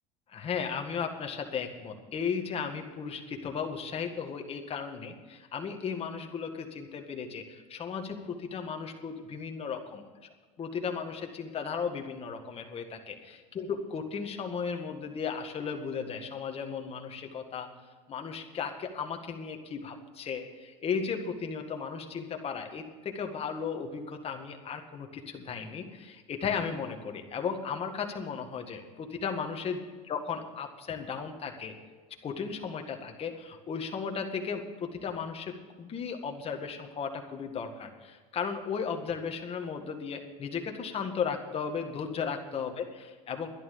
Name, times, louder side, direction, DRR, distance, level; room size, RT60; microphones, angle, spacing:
voice 1, 0.3-10.0 10.6-17.7 18.1-29.8 30.1-31.7 32.2-43.5, left 6 dB, 35° left, 4 dB, 1.9 m, -35 dB
11.5 x 11.0 x 6.8 m, 1.4 s
supercardioid pair, 120°, 18 cm